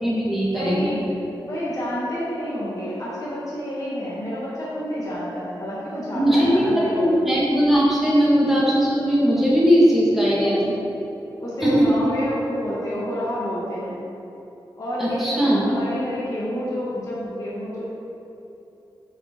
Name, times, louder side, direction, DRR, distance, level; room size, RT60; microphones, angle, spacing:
voice 1, 0.0-1.0 6.1-10.7 11.6-11.9 15.0-15.6, equal, 5° right, -7 dB, 1.7 m, -19 dB
voice 2, 0.5-1.1 1.4-7.1 10.4-10.6 11.4-14.0 14.7-17.8, equal, 40° left, -8 dB, 1.5 m, -29 dB
8.2 x 4.9 x 4.4 m, 3.0 s
wide cardioid pair, 175°, 9 cm